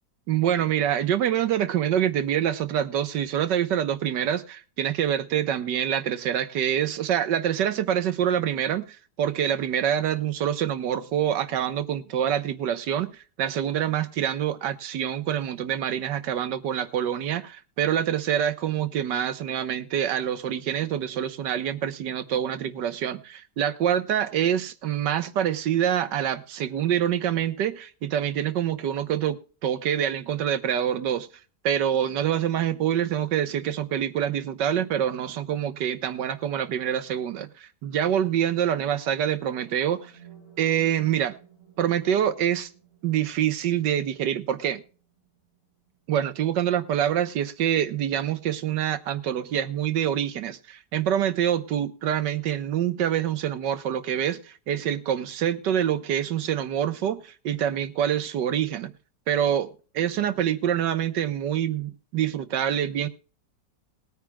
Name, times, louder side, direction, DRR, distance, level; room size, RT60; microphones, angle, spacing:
voice 1, 0.3-13.1 13.4-31.3 31.6-40.1 40.6-41.4 41.8-42.7 43.0-44.8 46.1-58.9 59.3-63.1, right 10 dB, 80° right, 1.6 m, -26 dB
sound 1, 39.3-47.4, right 7 dB, 45° left, 6.6 m, -55 dB
20.5 x 9.3 x 2.3 m
omnidirectional pair, 1.9 m